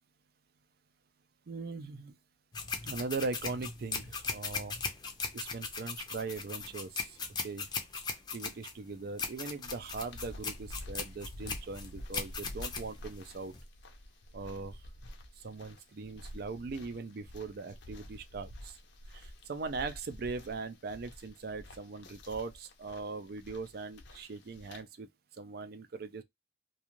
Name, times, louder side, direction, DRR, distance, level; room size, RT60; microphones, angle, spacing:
voice 1, 1.5-2.2 2.8-4.8 5.3-7.7 8.3-13.5 14.3-14.8 15.4-18.8 19.1-26.2, right 4 dB, 60° right, 0.4 m, -40 dB
sound 1, 2.5-13.6, left 5 dB, 25° left, 0.5 m, -39 dB
sound 2, 9.6-24.8, left 1 dB, 85° left, 0.6 m, -49 dB
2.5 x 2.3 x 2.9 m
head